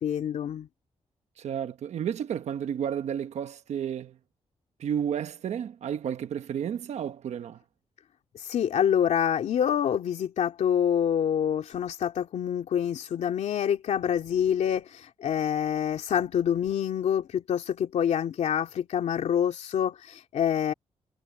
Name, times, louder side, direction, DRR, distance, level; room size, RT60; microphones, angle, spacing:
voice 1, 0.0-0.7 8.3-20.7, left 9 dB, 90° left, 2.6 m, -26 dB
voice 2, 1.4-4.2 4.8-7.6, right 9 dB, 75° right, 1.2 m, -32 dB
wide cardioid pair, 175°, 12 cm